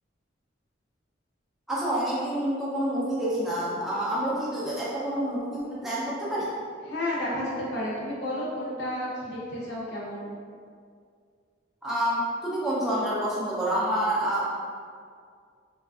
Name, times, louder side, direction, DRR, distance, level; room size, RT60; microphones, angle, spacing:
voice 1, 1.7-6.5 11.8-14.5, right 1 dB, ahead, -9 dB, 0.4 m, -28 dB
voice 2, 6.8-10.3, left 1 dB, 60° left, -5 dB, 0.7 m, -31 dB
3.2 x 2.3 x 2.3 m, 2.1 s
head